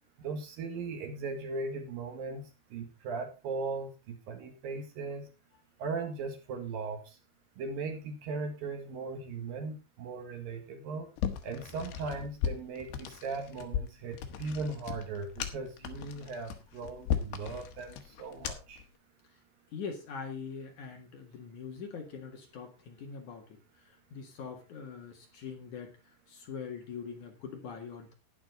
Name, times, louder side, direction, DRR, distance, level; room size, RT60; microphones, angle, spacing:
voice 1, 0.2-5.3 5.8-7.2 7.6-11.1 11.4-18.8, right 4 dB, 65° right, 5 dB, 3.2 m, -38 dB
sound 1, 11.2-18.8, left 8 dB, 75° left, 3.5 m, -37 dB
voice 2, 19.7-28.1, left 6 dB, 55° left, 3 dB, 2.8 m, -43 dB
12.0 x 10.5 x 3.8 m, 0.27 s
omnidirectional pair, 4.8 m